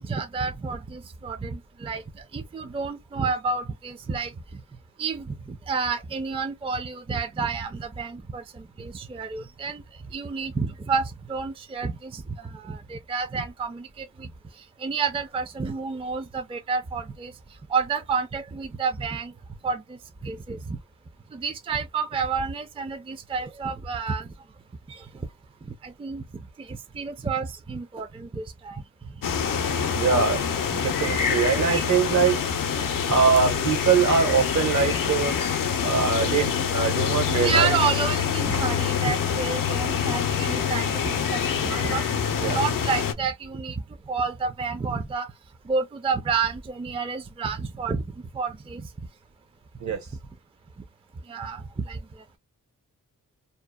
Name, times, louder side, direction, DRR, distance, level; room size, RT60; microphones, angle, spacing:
voice 1, 0.0-4.6 5.0-9.8 10.1-14.3 14.6-17.3 17.7-19.3 19.6-20.8 21.3-24.3 24.9-25.1 25.6-28.8 30.2-30.4 31.7-31.8 35.9-36.0 37.3-42.1 42.4-45.3 45.6-48.0 48.3-48.9 49.9-50.0 51.3-52.0, right 5 dB, 20° right, 0.4 m, -30 dB
sound 1, 29.2-43.1, left 7 dB, 85° left, 0.5 m, -26 dB
voice 2, 29.9-30.4 30.7-32.4 33.0-35.4 35.8-37.7 42.4-42.6 49.8-50.0, right 5 dB, 60° right, 0.8 m, -23 dB
2.7 x 2.0 x 2.2 m
wide cardioid pair, 85°, 32 cm